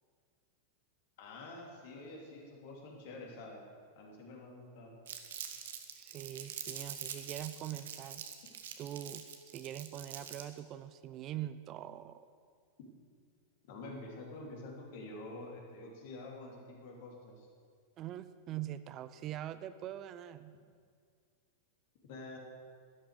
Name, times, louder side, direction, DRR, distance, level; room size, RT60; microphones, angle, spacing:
voice 1, 1.2-3.6 3.9-5.0 13.7-17.5 22.1-22.4, left 2 dB, 50° left, 0 dB, 3.0 m, -47 dB
Crumpling crinkling, 5.1-10.6, right 8 dB, 60° right, 1.2 m, -45 dB
voice 2, 6.0-8.3 8.8-9.2 9.5-12.3 18.0-20.5, right 12 dB, 35° right, 13 dB, 0.5 m, -43 dB
12.0 x 12.0 x 6.6 m, 2.1 s
figure-of-eight pair, 90°, 0 cm